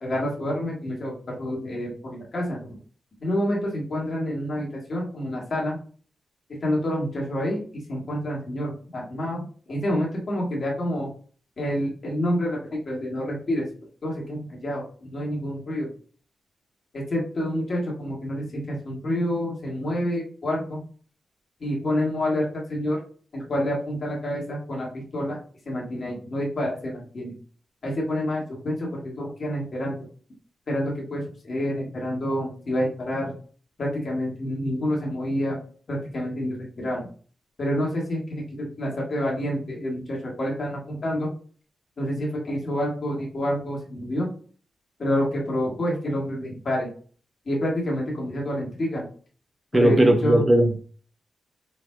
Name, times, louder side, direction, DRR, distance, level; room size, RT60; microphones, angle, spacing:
voice 1, 0.0-2.8 3.2-5.8 6.6-11.1 11.6-13.7 14.0-15.9 16.9-20.8 21.6-23.0 23.3-25.4 25.6-27.3 27.8-30.0 30.7-33.3 33.8-35.6 35.9-37.1 37.6-41.3 42.0-44.3 45.0-46.9 47.4-49.0 49.7-50.4, equal, 40° left, -3 dB, 1.6 m, -28 dB
voice 2, 49.7-50.8, right 1 dB, 20° right, 4 dB, 0.4 m, -18 dB
4.5 x 4.0 x 2.3 m, 0.43 s
wide cardioid pair, 160°, 0 cm